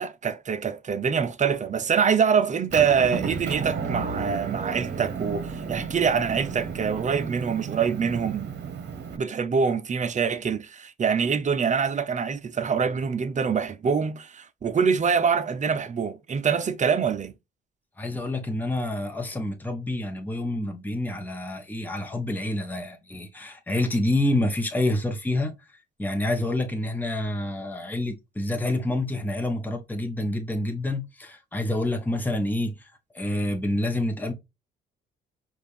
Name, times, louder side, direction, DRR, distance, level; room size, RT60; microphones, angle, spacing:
voice 1, 0.0-8.5 9.1-17.3, right 6 dB, 40° right, 0.7 m, -25 dB
Motor vehicle (road) / Engine, 2.7-9.2, right 5 dB, 60° right, 1.1 m, -33 dB
voice 2, 18.0-25.5 26.0-32.9 33.1-34.3, left 1 dB, 10° left, 1.1 m, -28 dB
5.1 x 2.6 x 3.2 m
cardioid pair, 90°, 20 cm